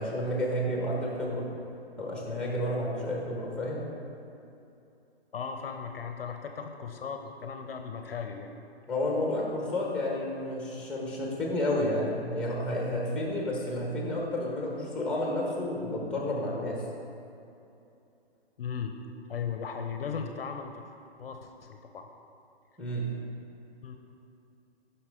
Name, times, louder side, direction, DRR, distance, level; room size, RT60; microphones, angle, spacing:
voice 1, 0.0-1.4 2.0-3.8 8.9-16.8 22.8-23.1, left 1 dB, 5° left, -2 dB, 1.2 m, -31 dB
voice 2, 5.3-8.5 18.6-18.9 19.3-20.8 21.2-22.1 23.8-24.0, left 6 dB, 60° left, 5 dB, 0.6 m, -37 dB
9.4 x 5.6 x 3.7 m, 2.8 s
hypercardioid pair, 135°, 32 cm